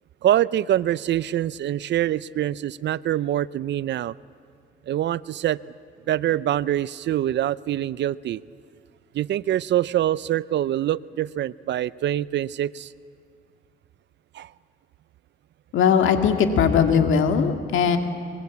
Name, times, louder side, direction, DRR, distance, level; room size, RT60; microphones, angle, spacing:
voice 1, 0.2-4.1 4.9-5.6 6.1-8.4 9.1-12.9 14.3-14.5, right 12 dB, 65° right, 20 dB, 0.5 m, -24 dB
voice 2, 15.7-18.0, left 7 dB, 80° left, 6 dB, 2.1 m, -19 dB
23.0 x 23.0 x 8.3 m, 2.3 s
cardioid pair, 90°, 20 cm